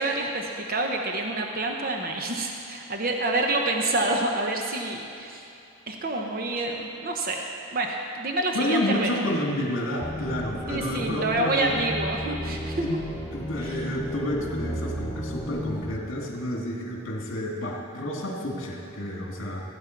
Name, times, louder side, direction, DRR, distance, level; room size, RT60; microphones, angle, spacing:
voice 1, 0.0-5.5 5.9-7.4 7.7-9.1 10.7-13.0 13.6-13.8, right 2 dB, 45° right, 2 dB, 0.8 m, -28 dB
voice 2, 8.5-11.8 12.8-13.0 13.3-19.6, left 1 dB, 65° left, -1 dB, 2.2 m, -30 dB
sound 1, 10.0-15.9, equal, 10° left, 0.5 m, -34 dB
16.0 x 8.7 x 4.5 m, 2.7 s
head